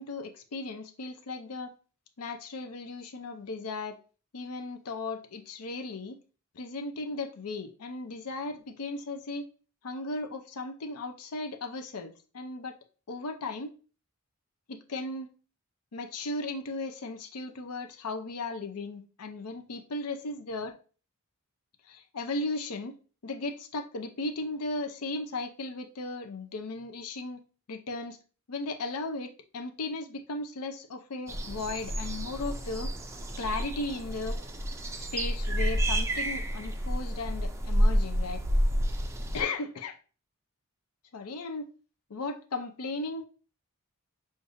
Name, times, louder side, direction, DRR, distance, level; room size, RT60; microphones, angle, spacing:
voice 1, 0.0-1.7 2.2-4.0 4.3-6.2 6.6-9.4 9.8-12.8 13.1-13.7 14.7-15.3 15.9-20.7 21.9-23.0 23.2-27.4 27.7-28.2 28.5-32.9 33.4-34.4 35.1-38.4 39.3-40.0 41.1-41.7 42.1-43.2, left 2 dB, 85° left, 5 dB, 0.6 m, -36 dB
sound 1, 31.3-39.4, equal, 10° right, 0.4 m, -29 dB
6.4 x 2.6 x 2.6 m, 0.36 s
head